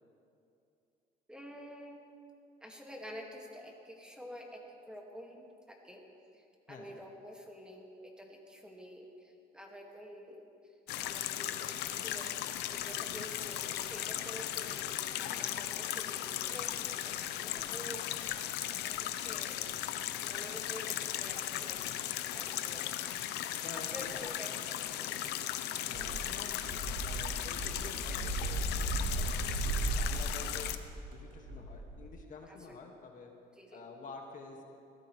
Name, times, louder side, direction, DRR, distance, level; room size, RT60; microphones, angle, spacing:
voice 1, 1.3-2.0 2.6-6.0 6.3-10.7 11.0-12.3 12.6-14.9 15.2-16.7 17.0-18.1 18.7-19.6 20.2-23.1 23.9-24.8 25.0-25.2 32.5-32.8 33.6-33.9, equal, 5° right, 0 dB, 2.0 m, -49 dB
sound 1, 10.9-30.8, left 12 dB, 80° left, 0.8 m, -37 dB
voice 2, 23.6-24.2 25.9-26.7 26.9-30.7 31.1-33.3 33.7-34.6, left 4 dB, 50° left, 1 dB, 1.9 m, -49 dB
sound 2, 25.9-32.1, right 2 dB, 75° right, 4.5 m, -36 dB
22.5 x 15.5 x 3.3 m, 2.6 s
cardioid pair, 110°, 17 cm